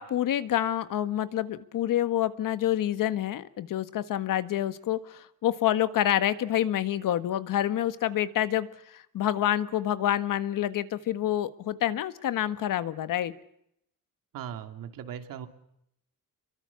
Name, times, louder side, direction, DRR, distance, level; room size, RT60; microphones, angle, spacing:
voice 1, 0.0-13.3, left 12 dB, 75° left, 12 dB, 1.6 m, -27 dB
voice 2, 14.3-15.5, right 9 dB, 85° right, 7 dB, 2.7 m, -38 dB
28.0 x 23.5 x 7.1 m, 0.78 s
cardioid pair, 135°, 32 cm